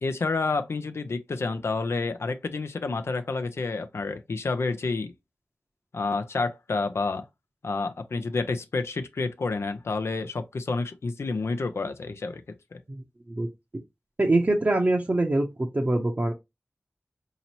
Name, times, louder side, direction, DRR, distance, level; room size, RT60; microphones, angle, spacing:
voice 1, 0.0-5.1 5.9-7.2 7.6-12.4 12.7-12.8, left 3 dB, 80° left, 0.5 m, -29 dB
voice 2, 12.9-13.5 14.2-16.3, right 2 dB, 40° right, 0.7 m, -24 dB
4.0 x 2.9 x 2.9 m
wide cardioid pair, 50°, 4 cm